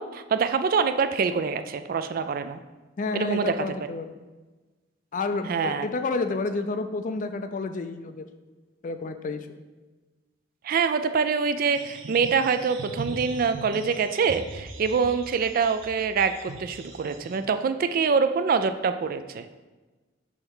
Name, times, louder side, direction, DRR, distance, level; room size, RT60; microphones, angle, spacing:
voice 1, 0.0-2.6 3.1-3.5 5.5-5.9 10.6-19.5, right 5 dB, 50° right, 10 dB, 0.3 m, -25 dB
voice 2, 3.0-4.1 5.1-8.3 8.8-9.6, left 3 dB, 45° left, 9 dB, 0.4 m, -30 dB
sound 1, 11.7-17.4, right 2 dB, 85° right, 0.7 m, -40 dB
6.3 x 3.4 x 5.4 m, 1.2 s
head